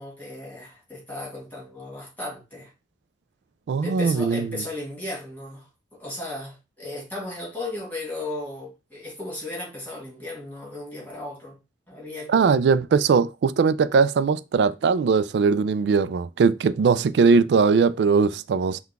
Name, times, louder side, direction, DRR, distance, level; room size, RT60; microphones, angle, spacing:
voice 1, 0.0-2.7 3.8-11.6 11.9-12.6, left 2 dB, 10° left, 1.9 m, -35 dB
voice 2, 3.7-4.6 12.3-18.8, right 5 dB, 70° right, 0.3 m, -20 dB
5.6 x 2.3 x 3.5 m
head